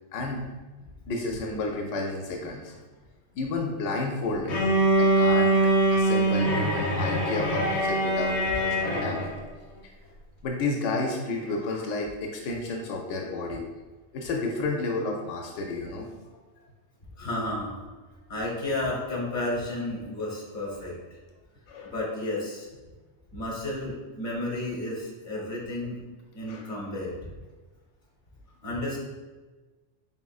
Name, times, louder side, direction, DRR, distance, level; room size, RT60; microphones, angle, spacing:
voice 1, 0.1-0.4 1.1-2.8 3.3-4.6 5.0-5.5 5.9-9.3 10.4-13.6 14.1-16.1 21.7-21.9 26.5-26.6, left 3 dB, 90° left, 1 dB, 0.9 m, -31 dB
Bowed string instrument, 4.5-9.4, right 1 dB, 70° left, 1.1 m, -23 dB
voice 2, 17.2-17.8 18.3-20.9 21.8-22.7 23.3-26.0 26.3-27.3 28.6-29.0, left 1 dB, 45° left, -4 dB, 1.3 m, -32 dB
4.8 x 3.6 x 2.3 m, 1.3 s
omnidirectional pair, 1.2 m